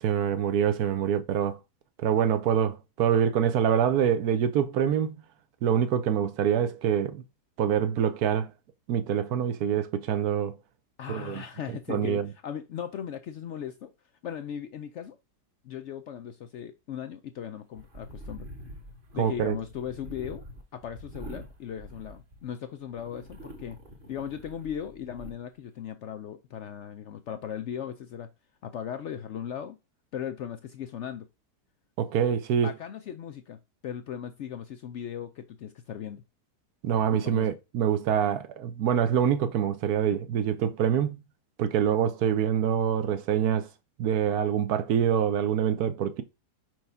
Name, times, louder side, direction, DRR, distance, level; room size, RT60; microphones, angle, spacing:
voice 1, 0.0-1.6 2.0-5.1 5.6-7.2 7.6-8.5 8.9-10.6 11.1-11.4 11.9-12.3 19.2-19.6 32.0-32.7 36.8-41.2 41.6-43.7 44.0-46.2, right 8 dB, 70° right, 1.1 m, -25 dB
voice 2, 11.0-13.9 14.2-15.2 15.6-18.5 19.1-20.4 20.7-23.8 24.1-28.3 28.6-29.8 30.1-31.3 32.6-36.2 37.1-37.5, left 9 dB, 80° left, 0.6 m, -38 dB
sound 1, 17.8-22.6 22.9-25.3, equal, 35° right, 1.2 m, -45 dB
4.6 x 4.6 x 5.5 m
omnidirectional pair, 1.8 m